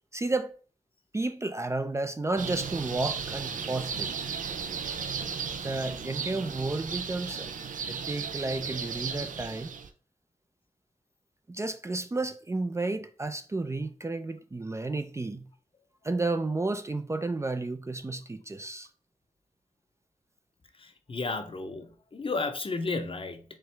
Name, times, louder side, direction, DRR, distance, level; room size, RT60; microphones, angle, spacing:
voice 1, 0.1-0.5 1.1-4.1 5.5-7.5 7.9-9.7 11.5-15.5 16.0-18.9, right 2 dB, 20° right, 0.4 m, -32 dB
sound 1, 2.4-9.9, right 6 dB, 85° right, 0.5 m, -35 dB
voice 2, 20.8-23.4, left 3 dB, 45° left, 0.6 m, -33 dB
4.5 x 3.6 x 3.3 m
wide cardioid pair, 75°, 13 cm